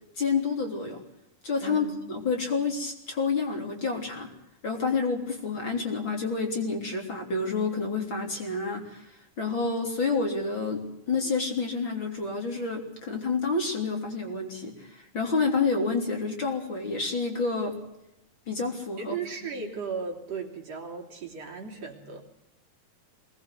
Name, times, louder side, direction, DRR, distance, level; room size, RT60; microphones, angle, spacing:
voice 1, 0.2-1.0 1.4-4.3 4.6-17.8 18.5-19.2 19.6-19.7, left 4 dB, 35° left, 2 dB, 3.9 m, -29 dB
voice 2, 1.6-1.9 2.4-2.5 19.0-22.2, right 5 dB, 50° right, 0 dB, 4.0 m, -36 dB
23.0 x 19.5 x 7.9 m, 0.83 s
omnidirectional pair, 3.9 m